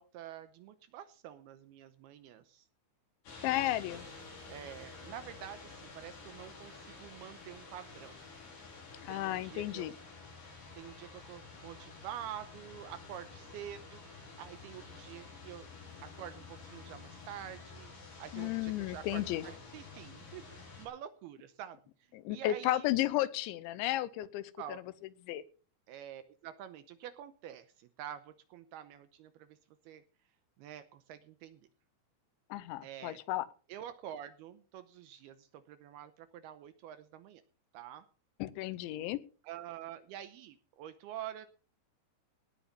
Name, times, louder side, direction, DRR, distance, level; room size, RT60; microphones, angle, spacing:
voice 1, 0.0-2.7 3.4-3.7 4.5-8.2 9.1-10.0 10.8-15.7 16.0-17.9 18.2-21.8 22.3-22.9 24.6-24.8 25.9-29.6 29.9-30.0 30.6-31.6 32.8-33.2 33.7-37.4 37.7-38.1 39.4-41.5, right 11 dB, 80° right, 11 dB, 2.4 m, -47 dB
sound 1, 3.2-20.9, left 4 dB, 50° left, 6.3 m, -50 dB
voice 2, 3.4-4.1 9.0-9.9 18.3-19.4 22.1-24.5 25.3-25.4 32.5-33.5 38.4-39.2, left 15 dB, 85° left, 16 dB, 3.1 m, -33 dB
18.0 x 7.2 x 5.4 m, 0.38 s
omnidirectional pair, 5.2 m